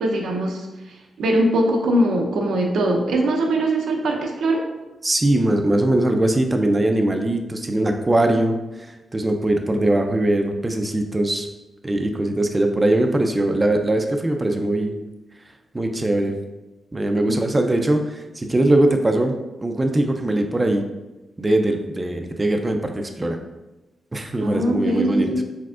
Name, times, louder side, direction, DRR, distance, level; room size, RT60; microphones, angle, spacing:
voice 1, 0.0-4.6 17.3-17.4 24.4-25.4, right 1 dB, 90° right, 1 dB, 0.6 m, -21 dB
voice 2, 5.0-11.5 11.8-15.0 15.7-16.4 16.9-20.8 21.4-23.4 24.1-25.3, right 1 dB, 25° right, 4 dB, 0.4 m, -21 dB
4.7 x 3.5 x 2.4 m, 1.0 s
cardioid pair, 80°, 0 cm